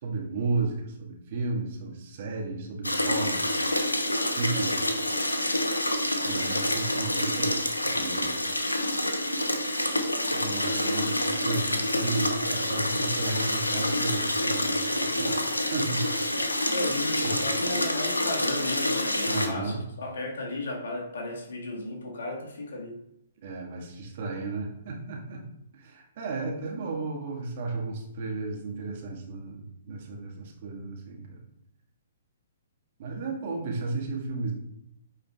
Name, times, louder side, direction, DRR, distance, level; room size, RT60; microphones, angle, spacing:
voice 1, 0.0-3.5 4.3-4.9 6.2-8.3 10.3-16.0 17.2-17.3 19.2-19.8 23.4-25.4 25.7-31.4 33.0-34.5, right 3 dB, 45° right, -1 dB, 1.7 m, -33 dB
sound 1, 2.8-19.5, left 1 dB, 90° left, 0.8 m, -27 dB
voice 2, 16.7-23.0, left 2 dB, 65° left, -1 dB, 1.8 m, -34 dB
8.9 x 4.5 x 2.4 m, 0.79 s
figure-of-eight pair, 120°, 0 cm